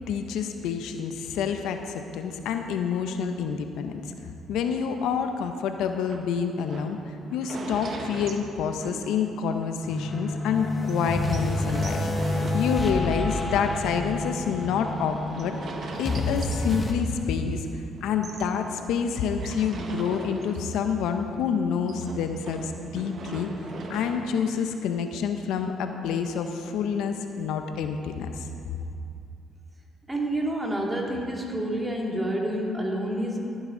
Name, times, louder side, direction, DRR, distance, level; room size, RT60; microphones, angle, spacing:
voice 1, 0.1-3.9 4.5-15.6 16.0-23.5 23.9-28.5, left 6 dB, 80° left, 6 dB, 0.7 m, -28 dB
sound 1, 4.6-9.6 10.0-10.1 10.3-10.4 10.9-17.7 18.0-21.0 21.3-24.5, right 3 dB, 55° right, 1.2 m, -41 dB
sound 2, 9.8-16.9, left 2 dB, 25° left, 1.5 m, -29 dB
voice 2, 30.1-33.4, right 1 dB, 15° right, -1 dB, 2.2 m, -28 dB
15.0 x 9.6 x 3.8 m, 2.5 s
supercardioid pair, 75°, 0 cm